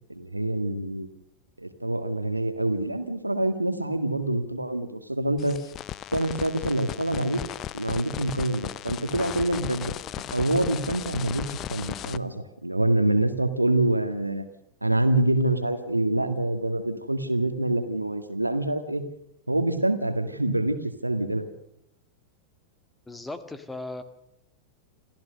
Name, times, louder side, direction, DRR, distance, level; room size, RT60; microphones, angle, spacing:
voice 1, 0.1-1.1 1.6-5.6 6.1-7.4 7.7-9.9 10.3-12.3 12.6-14.5 14.8-19.0 19.5-20.8 21.0-21.5, right 1 dB, 85° right, 9 dB, 1.8 m, -26 dB
sound 1, 5.4-12.2, left 11 dB, 30° left, 0.7 m, -36 dB
voice 2, 23.1-24.0, left 2 dB, 10° left, 10 dB, 1.9 m, -37 dB
27.0 x 14.5 x 6.6 m, 0.82 s
figure-of-eight pair, 90°, 0 cm